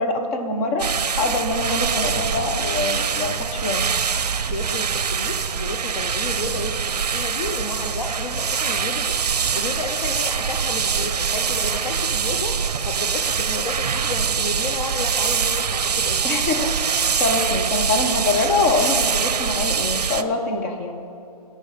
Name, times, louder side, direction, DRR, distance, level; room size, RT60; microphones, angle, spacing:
voice 1, 0.0-3.9 16.2-21.0, left 3 dB, 20° left, 3 dB, 0.8 m, -24 dB
sound 1, 0.8-20.2, right 6 dB, 80° right, 0.5 m, -24 dB
voice 2, 4.5-16.2, left 3 dB, 75° left, 5 dB, 0.9 m, -32 dB
15.5 x 6.4 x 4.1 m, 2.7 s
hypercardioid pair, 150°, 20 cm